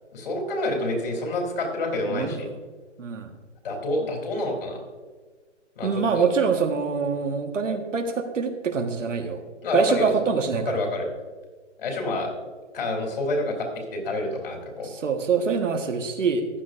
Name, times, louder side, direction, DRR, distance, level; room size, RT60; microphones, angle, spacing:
voice 1, 0.1-2.4 3.6-4.8 5.7-5.9 6.1-6.3 9.6-10.1 10.5-11.1 11.8-12.3 12.7-14.9, left 2 dB, 50° left, 1 dB, 3.4 m, -28 dB
voice 2, 2.0-2.5 3.0-3.3 5.8-9.4 9.7-10.8 14.8-16.5, right 5 dB, 85° right, 5 dB, 1.6 m, -25 dB
14.5 x 10.5 x 2.6 m, 1.4 s
hypercardioid pair, 165°, 36 cm